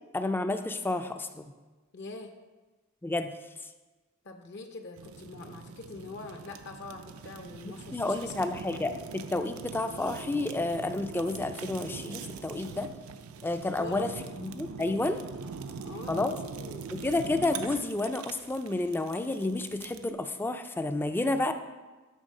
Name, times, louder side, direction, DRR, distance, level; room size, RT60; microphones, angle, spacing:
voice 1, 0.1-1.5 3.0-3.3 7.9-12.9 13.4-14.1 14.4-15.2 16.1-16.4 16.9-21.5, left 2 dB, 10° left, 8 dB, 0.3 m, -30 dB
voice 2, 1.9-2.3 4.2-8.4 13.8-14.1 15.8-17.0, left 3 dB, 55° left, 5 dB, 0.6 m, -44 dB
Fire, 5.0-20.1, right 5 dB, 85° right, 0.5 m, -42 dB
10.0 x 3.4 x 6.4 m, 1.2 s
head